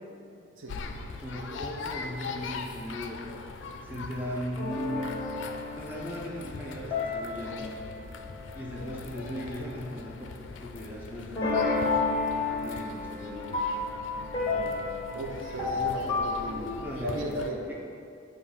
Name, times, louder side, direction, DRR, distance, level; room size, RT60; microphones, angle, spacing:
sound 1, 0.7-17.5, left 4 dB, 70° left, 0.4 m, -41 dB
voice 1, 1.2-3.2 3.8-5.1 5.8-7.7 8.5-10.3 10.6-12.0 12.5-13.7 16.8-17.2, equal, 10° right, -5 dB, 0.7 m, -38 dB
sound 2, 4.6-9.1 11.4-16.4, left 3 dB, 20° left, 0.9 m, -32 dB
voice 2, 14.4-14.7 15.1-16.7 17.0-17.7, right 1 dB, 85° right, 1 dB, 0.7 m, -36 dB
6.8 x 2.5 x 5.4 m, 2.5 s
head